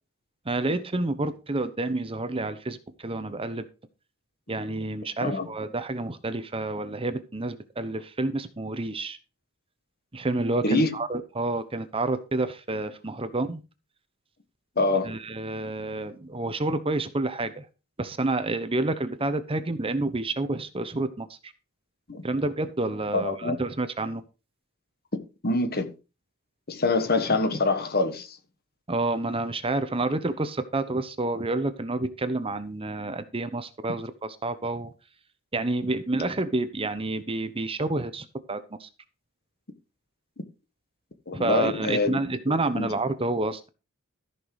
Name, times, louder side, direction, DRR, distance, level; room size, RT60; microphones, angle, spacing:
voice 1, 0.4-3.7 4.5-9.2 10.1-13.6 15.0-17.7 18.0-21.5 22.2-24.2 28.9-34.9 35.5-38.9 41.3-43.7, right 2 dB, 25° right, 0.9 m, -29 dB
voice 2, 10.6-10.9 14.8-15.1 22.1-22.2 23.1-23.5 25.4-25.9 26.7-28.3 41.3-42.2 42.8-42.9, left 3 dB, 45° left, 1.4 m, -25 dB
14.0 x 6.0 x 4.8 m
head